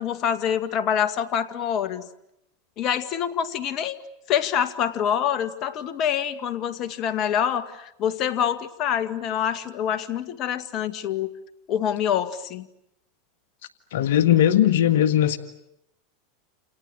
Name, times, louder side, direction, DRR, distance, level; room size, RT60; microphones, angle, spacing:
voice 1, 0.0-2.1 2.8-4.0 4.3-11.3 11.7-12.7, left 9 dB, 45° left, 12 dB, 2.0 m, -26 dB
voice 2, 13.9-15.4, left 11 dB, 75° left, 11 dB, 1.8 m, -19 dB
29.5 x 29.0 x 6.5 m, 0.82 s
hypercardioid pair, 100°, 0 cm